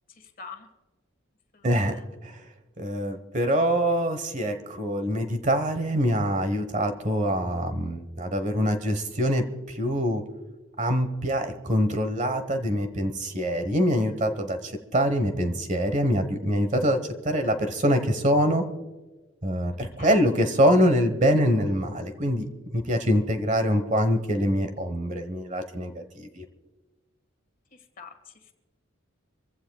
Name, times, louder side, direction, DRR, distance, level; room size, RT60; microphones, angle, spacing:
voice 1, 0.1-0.7 1.5-2.0 20.0-20.2 27.7-28.5, left 5 dB, 45° left, 6 dB, 1.7 m, -46 dB
voice 2, 1.6-1.9 2.2-2.3 2.8-10.2 10.8-18.6 19.4-26.4, equal, 35° right, 8 dB, 1.2 m, -24 dB
25.5 x 15.5 x 2.4 m, 1.2 s
head